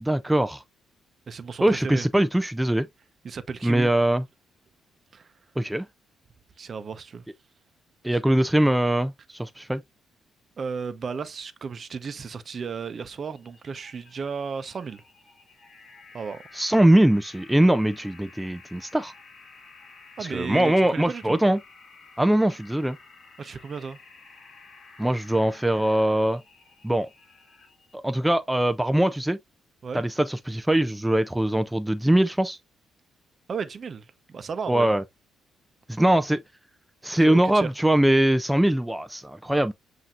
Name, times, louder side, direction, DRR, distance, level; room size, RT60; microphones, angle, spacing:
voice 1, 0.0-0.6 1.6-2.9 3.6-4.2 5.6-5.9 8.0-9.8 16.5-19.1 20.2-21.6 22.2-23.0 25.0-26.4 26.8-27.1 28.0-29.4 29.9-32.6 34.7-35.0 35.9-36.4 37.0-39.7, right 1 dB, 5° right, 0.3 m, -22 dB
voice 2, 1.3-2.1 3.2-3.9 5.1-5.3 6.6-7.3 8.1-8.2 10.6-15.0 16.1-16.4 20.2-21.4 23.4-24.0 29.8-30.1 33.5-34.9 37.1-37.7, right 5 dB, 45° right, 0.7 m, -34 dB
sound 1, 13.4-27.9, left 4 dB, 45° left, 1.4 m, -51 dB
7.4 x 2.7 x 2.4 m
cardioid pair, 90°, 0 cm